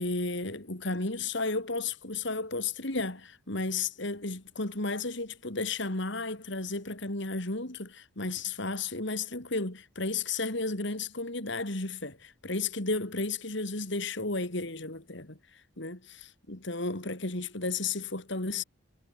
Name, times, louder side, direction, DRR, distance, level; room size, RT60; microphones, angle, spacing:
voice 1, 0.0-18.6, left 3 dB, 55° left, 2.7 m, -33 dB
head